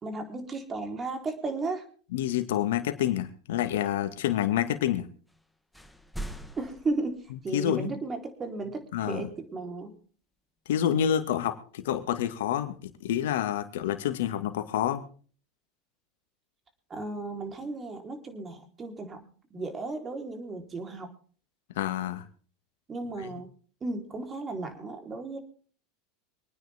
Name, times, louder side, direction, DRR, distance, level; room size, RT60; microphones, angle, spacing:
voice 1, 0.0-1.8 6.6-8.8 9.1-10.0 16.9-21.1 22.9-23.5 23.8-25.4, right 3 dB, 25° right, 6 dB, 3.8 m, -35 dB
voice 2, 2.1-5.1 7.5-7.9 8.9-9.3 10.7-15.0 21.8-22.3 23.2-23.3, left 10 dB, 85° left, 8 dB, 1.9 m, -28 dB
sound 1, 5.3-5.5 5.7-7.8, right 1 dB, ahead, 1.5 m, -42 dB
25.0 x 9.8 x 3.6 m, 0.42 s
supercardioid pair, 110°, 0 cm